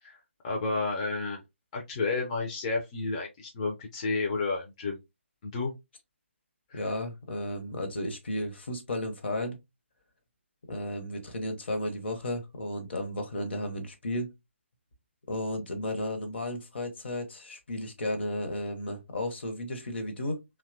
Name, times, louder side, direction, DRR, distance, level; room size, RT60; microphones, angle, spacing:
voice 1, 0.0-1.4 1.7-5.0 5.4-5.7 6.7-6.9, left 3 dB, 30° left, 0.4 m, -31 dB
voice 2, 6.7-9.6 10.7-14.3 15.3-20.4, left 1 dB, 60° left, 0.8 m, -33 dB
2.7 x 2.2 x 2.5 m
figure-of-eight pair, 140°, 7 cm